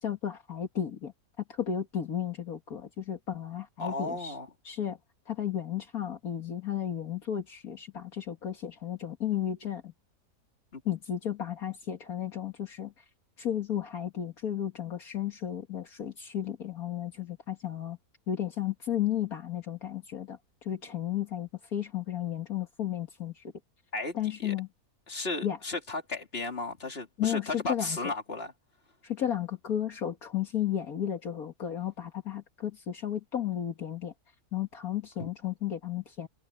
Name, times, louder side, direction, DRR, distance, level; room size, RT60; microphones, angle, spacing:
voice 1, 0.0-1.1 1.5-4.4 4.6-5.0 5.3-9.9 10.9-12.9 13.4-18.0 18.3-23.4 24.1-24.7 25.4-25.6 27.2-28.1 29.0-34.1 34.5-36.3, left 10 dB, 70° left, 2.2 m, -33 dB
voice 2, 3.8-4.5 10.7-10.8 23.9-24.5 25.1-28.5 35.2-35.3, left 2 dB, 40° left, 3.2 m, -35 dB
omnidirectional pair, 1.6 m